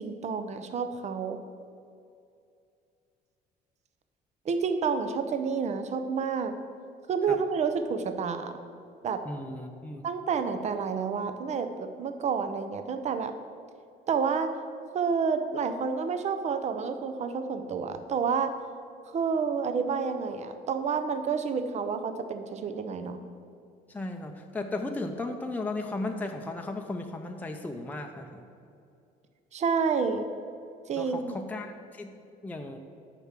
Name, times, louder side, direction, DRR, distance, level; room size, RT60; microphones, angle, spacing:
voice 1, 0.0-1.4 4.4-6.5 7.1-8.5 9.0-9.2 10.0-13.3 14.1-14.5 14.9-18.5 19.1-23.2 29.5-30.3 30.9-31.4, right 5 dB, 40° right, 8 dB, 0.7 m, -29 dB
voice 2, 9.3-10.0 23.9-28.4 31.0-32.1 32.4-32.8, left 2 dB, 10° left, 3 dB, 0.6 m, -35 dB
6.9 x 5.9 x 7.5 m, 2.5 s
cardioid pair, 110°, 17 cm